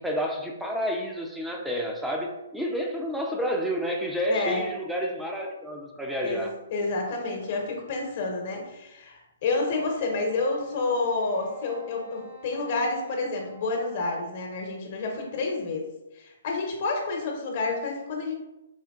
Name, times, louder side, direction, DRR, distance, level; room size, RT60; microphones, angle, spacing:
voice 1, 0.0-6.5, equal, 5° right, 0 dB, 0.5 m, -30 dB
voice 2, 4.3-4.6 6.2-6.4 6.7-15.9 16.1-18.3, left 3 dB, 50° left, 1 dB, 1.1 m, -29 dB
Wind instrument woodwind instrument, 10.2-14.8, right 2 dB, 60° right, 1.2 m, -50 dB
4.3 x 3.4 x 2.4 m, 0.93 s
hypercardioid pair, 145°, 0 cm